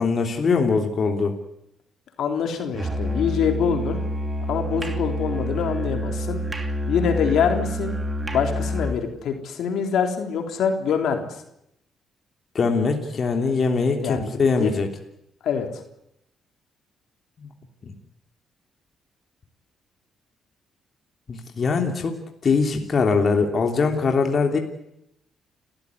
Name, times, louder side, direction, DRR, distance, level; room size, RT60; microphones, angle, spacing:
voice 1, 0.0-1.4 12.5-14.9 17.4-17.5 21.3-22.2 22.4-24.6, left 4 dB, 45° left, 3 dB, 3.2 m, -22 dB
voice 2, 2.2-4.0 4.5-6.4 6.9-8.0 8.3-11.3 14.0-14.7 15.4-15.7, left 7 dB, 75° left, 4 dB, 3.8 m, -25 dB
Musical instrument, 2.7-9.1, equal, 20° right, 2.9 m, -28 dB
29.5 x 14.5 x 9.8 m, 0.80 s
cardioid pair, 90°, 0 cm